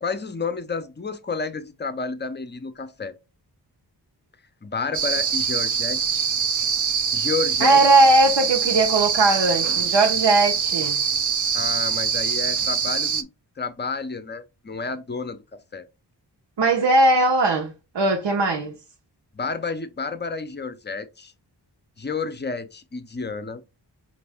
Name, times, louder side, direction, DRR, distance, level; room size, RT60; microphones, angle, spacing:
voice 1, 0.0-3.1 4.6-6.3 7.1-7.8 11.5-13.3 13.6-15.4 15.7-15.9 19.3-21.3 22.0-23.6, left 4 dB, 25° left, 0.5 m, -30 dB
sound 1, 4.9-13.2, right 6 dB, 45° right, 0.5 m, -24 dB
voice 2, 7.6-11.0 16.6-18.7, right 2 dB, 75° right, 1.0 m, -19 dB
5.1 x 2.6 x 3.4 m
wide cardioid pair, 120°, 42 cm